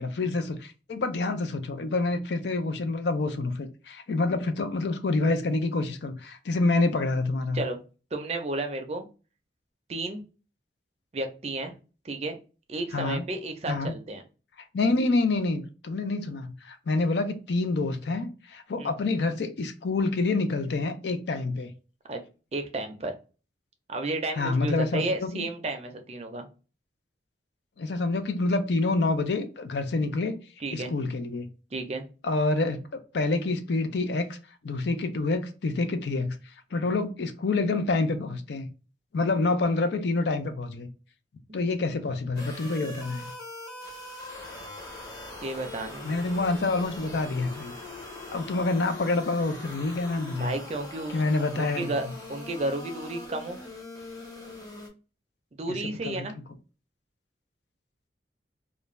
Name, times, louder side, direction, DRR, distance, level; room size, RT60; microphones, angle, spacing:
voice 1, 0.0-7.6 12.9-13.2 13.7-13.9 14.7-21.7 24.4-25.5 27.8-30.4 30.7-31.5 32.2-32.8 33.1-34.4 34.6-36.4 36.7-38.7 39.1-40.9 41.5-43.3 46.0-47.7 48.3-50.5 51.1-51.9 56.0-56.3, left 3 dB, 70° left, 0.4 m, -27 dB
voice 2, 8.1-9.1 9.9-10.2 11.1-11.7 12.0-12.4 12.7-14.2 18.8-18.9 22.1-22.2 22.5-23.1 23.9-26.5 30.6-30.9 31.7-32.0 41.5-41.6 45.4-46.1 50.3-51.2 51.6-53.6 55.5-56.4, right 2 dB, 35° right, 0.4 m, -32 dB
sound 1, 42.4-54.9, left 2 dB, 20° left, 0.7 m, -42 dB
2.5 x 2.1 x 3.1 m
head